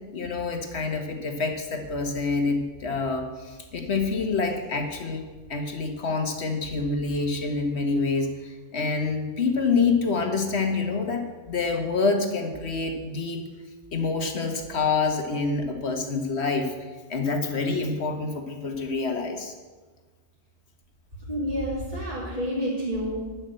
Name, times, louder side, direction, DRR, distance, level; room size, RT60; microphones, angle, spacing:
voice 1, 0.1-5.2 5.5-13.4 13.9-16.7 17.1-19.5, left 4 dB, 65° left, 4 dB, 1.5 m, -27 dB
voice 2, 21.3-23.2, equal, 30° right, -7 dB, 2.5 m, -29 dB
10.5 x 6.8 x 7.7 m, 1.3 s
omnidirectional pair, 1.2 m